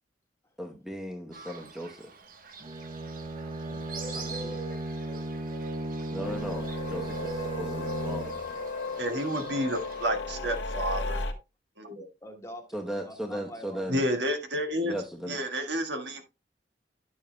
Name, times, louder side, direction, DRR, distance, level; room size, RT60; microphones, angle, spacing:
voice 1, 0.6-2.1 6.1-8.4 12.7-14.0 14.8-15.4, equal, 5° right, 0.9 m, -37 dB
Fowl, 1.3-10.1, right 4 dB, 50° right, 1.1 m, -43 dB
Bowed string instrument, 2.6-8.6, right 1 dB, 30° right, 0.7 m, -36 dB
voice 2, 3.7-4.7 12.2-14.0, equal, 15° left, 1.6 m, -46 dB
sound 1, 6.2-11.3, left 3 dB, 75° left, 1.3 m, -35 dB
voice 3, 9.0-11.2 11.8-12.1 13.9-14.9 15.3-16.2, equal, 70° right, 1.6 m, -30 dB
11.0 x 7.2 x 2.2 m
head